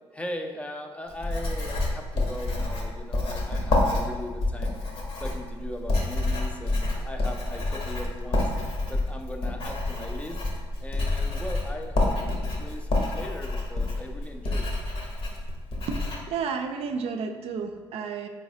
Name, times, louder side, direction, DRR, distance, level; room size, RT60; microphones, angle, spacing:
voice 1, 0.1-4.8 5.2-8.5 8.9-10.4 10.8-12.2 12.6-14.7, left 1 dB, 10° left, 4 dB, 0.4 m, -39 dB
Writing, 1.1-16.2, left 2 dB, 55° left, 1.0 m, -28 dB
voice 2, 16.3-18.3, right 5 dB, 60° right, 5 dB, 0.4 m, -31 dB
3.9 x 3.1 x 2.7 m, 1.5 s
supercardioid pair, 65°, 11 cm